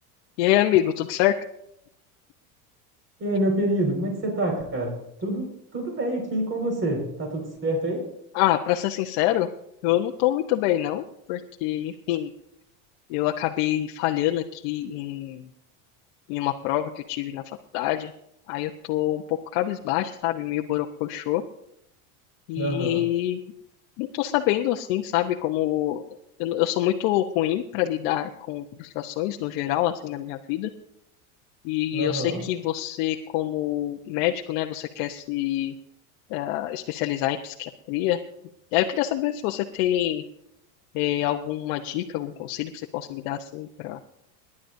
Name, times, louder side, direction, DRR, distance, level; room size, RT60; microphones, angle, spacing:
voice 1, 0.4-1.3 8.3-9.5 9.8-12.3 13.1-15.5 16.3-18.1 18.5-21.4 22.5-23.4 24.0-26.0 26.4-30.7 31.6-35.7 36.3-38.2 38.7-40.2 40.9-44.0, left 13 dB, 65° left, 2 dB, 1.0 m, -26 dB
voice 2, 3.2-4.9 5.2-5.4 5.7-8.0 22.6-23.0 31.9-32.4, right 1 dB, 25° right, 1 dB, 4.8 m, -26 dB
28.0 x 11.0 x 2.7 m, 0.77 s
supercardioid pair, 125°, 45 cm